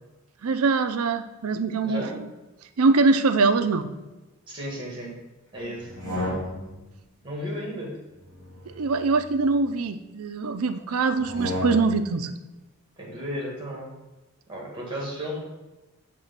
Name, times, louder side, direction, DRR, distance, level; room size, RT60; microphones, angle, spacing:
voice 1, 0.4-2.2 2.8-3.9 6.1-6.3 8.7-12.3, right 4 dB, 75° right, 10 dB, 0.5 m, -23 dB
voice 2, 1.8-2.2 4.5-5.1 5.5-6.0 7.2-8.0 10.9-11.2 13.0-13.9 14.5-15.4, equal, 20° right, -3 dB, 1.8 m, -34 dB
sound 1, 5.8-6.9 8.1-9.8 11.1-12.1, left 1 dB, 15° left, 2.2 m, -33 dB
6.6 x 3.4 x 5.6 m, 1.1 s
head